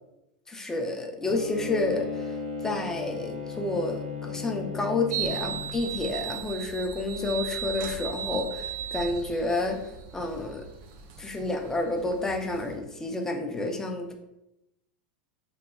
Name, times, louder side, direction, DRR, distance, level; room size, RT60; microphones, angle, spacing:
voice 1, 0.5-9.8 10.1-10.7 11.2-14.1, left 2 dB, 10° left, 3 dB, 0.4 m, -30 dB
Bowed string instrument, 1.2-5.9, left 5 dB, 80° right, 0.7 m, -36 dB
sound 1, 5.1-12.8, right 9 dB, 55° right, 0.3 m, -37 dB
2.7 x 2.2 x 2.3 m, 0.89 s
hypercardioid pair, 105°, 5 cm